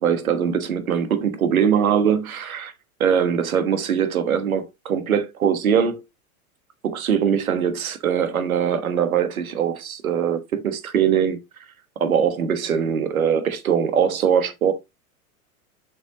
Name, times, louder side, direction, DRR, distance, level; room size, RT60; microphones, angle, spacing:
voice 1, 0.0-2.7 3.0-6.0 6.8-11.4 12.0-14.7, right 8 dB, 75° right, 1.3 m, -22 dB
7.8 x 5.3 x 3.0 m
figure-of-eight pair, 90°, 43 cm